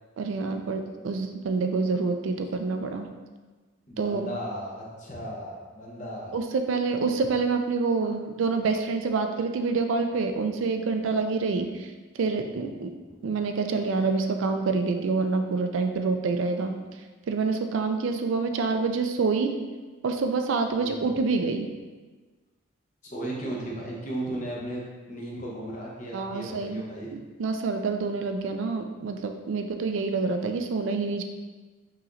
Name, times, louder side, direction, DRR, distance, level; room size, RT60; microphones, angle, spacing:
voice 1, 0.2-3.1 4.0-4.3 6.3-11.9 12.2-12.9 13.2-16.7 17.3-19.6 20.0-21.7 26.1-26.8 27.1-31.2, right 4 dB, 70° right, 6 dB, 0.4 m, -27 dB
voice 2, 3.9-6.4 20.8-21.0 23.0-27.1, right 1 dB, 35° left, -4 dB, 0.9 m, -35 dB
5.5 x 3.0 x 2.6 m, 1.3 s
head